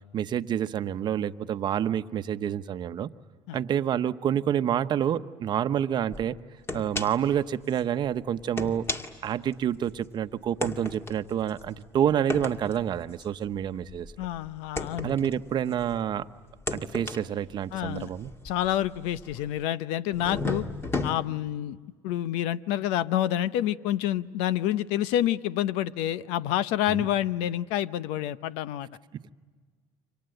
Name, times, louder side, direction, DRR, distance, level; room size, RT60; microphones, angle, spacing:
voice 1, 0.1-3.1 3.5-6.4 6.7-8.9 9.2-14.1 15.0-16.3 16.7-18.3 26.9-27.1, right 9 dB, 45° right, 11 dB, 1.0 m, -28 dB
sound 1, 6.1-6.2 6.7-7.3 7.7-7.8 8.4-10.0 10.6-16.1 16.5-19.6 20.1-21.1, left 2 dB, 25° left, 2.1 m, -35 dB
voice 2, 14.2-15.3 17.7-18.1 18.4-20.6 21.0-21.8 22.0-28.9, left 12 dB, 80° left, 16 dB, 0.8 m, -28 dB
29.0 x 25.5 x 7.9 m, 1.5 s
supercardioid pair, 95°, 10 cm